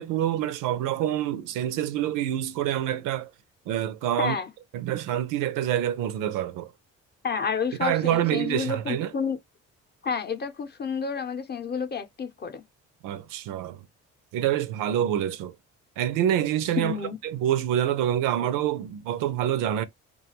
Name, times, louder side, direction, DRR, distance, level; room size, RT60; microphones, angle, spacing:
voice 1, 0.0-3.3 3.7-4.4 4.7-6.7 7.8-9.1 13.0-13.8 14.3-15.5 16.0-17.0 17.2-19.8, right 11 dB, 85° right, 0.5 m, -26 dB
voice 2, 4.2-4.5 7.2-9.4 10.0-12.6 16.8-17.2 18.4-18.5, left 6 dB, 30° left, 0.6 m, -30 dB
2.3 x 2.3 x 2.8 m
supercardioid pair, 80°, 31 cm